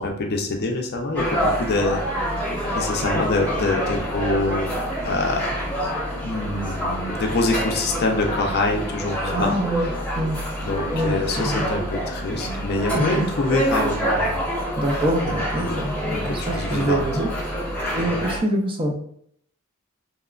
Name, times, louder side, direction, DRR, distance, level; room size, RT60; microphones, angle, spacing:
voice 1, 0.0-2.4 2.7-4.7 5.0-5.5 6.2-9.9 10.6-14.4 14.9-17.0, left 2 dB, 50° left, 3 dB, 0.4 m, -25 dB
sound 1, 1.1-18.4, equal, 5° left, 0.8 m, -27 dB
voice 2, 9.3-10.4 10.9-11.7 12.9-13.3 14.8-17.3 17.9-18.9, right 1 dB, 25° right, 1 dB, 0.4 m, -25 dB
2.9 x 2.1 x 2.4 m, 0.66 s
head